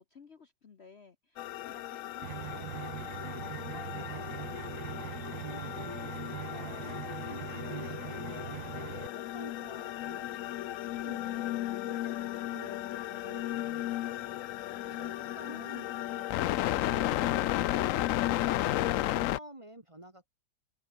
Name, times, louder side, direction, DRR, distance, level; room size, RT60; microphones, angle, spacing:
voice 1, 0.0-4.5 14.8-15.6, left 5 dB, 45° left, 1.2 m, -55 dB
sound 1, 1.4-19.4, left 14 dB, 75° left, 0.7 m, -34 dB
sound 2, 2.2-9.1, right 14 dB, 85° right, 1.4 m, -42 dB
voice 2, 5.1-11.5 11.8-14.4 14.9-18.6 19.2-20.3, right 1 dB, 20° right, 1.5 m, -52 dB
omnidirectional pair, 1.9 m